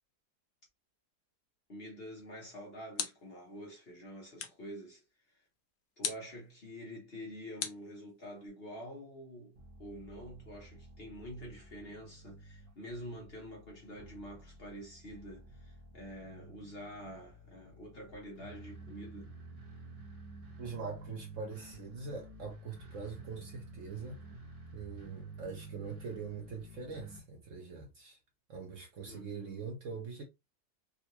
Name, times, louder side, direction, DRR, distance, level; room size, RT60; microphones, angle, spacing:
voice 1, 1.7-5.4 6.0-19.3 29.1-29.8, equal, 45° left, 0.9 m, -47 dB
sound 1, 2.3-3.5 4.4-4.7 6.0-6.4 7.6-8.5, left 8 dB, 85° left, 1.3 m, -40 dB
sound 2, 9.6-27.2, right 2 dB, 30° right, 0.7 m, -51 dB
voice 2, 20.6-24.2 24.7-28.2 28.5-30.2, right 5 dB, 55° right, 1.0 m, -43 dB
3.8 x 2.4 x 2.8 m
omnidirectional pair, 1.8 m